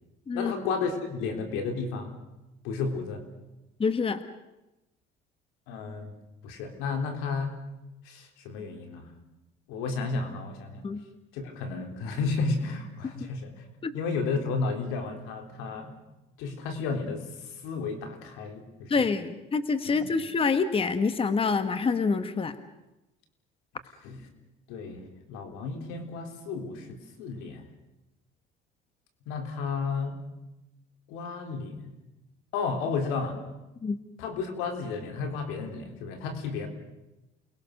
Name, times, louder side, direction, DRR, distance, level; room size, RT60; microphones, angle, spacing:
voice 1, 0.3-2.1 2.6-3.2 5.7-6.1 6.4-7.6 8.1-9.1 9.7-10.8 11.3-13.5 13.9-16.0 16.4-17.2 17.6-19.1 19.8-20.0 24.0-24.2 24.7-27.6 29.3-30.1 31.1-31.9 32.5-33.4 34.2-36.7, left 4 dB, 85° left, 5 dB, 3.8 m, -32 dB
voice 2, 3.8-4.2 10.8-11.0 13.2-13.3 13.8-13.9 18.9-22.6 33.8-34.0, left 4 dB, 25° left, 10 dB, 1.4 m, -26 dB
28.5 x 20.5 x 6.6 m, 0.98 s
cardioid pair, 105°, 20 cm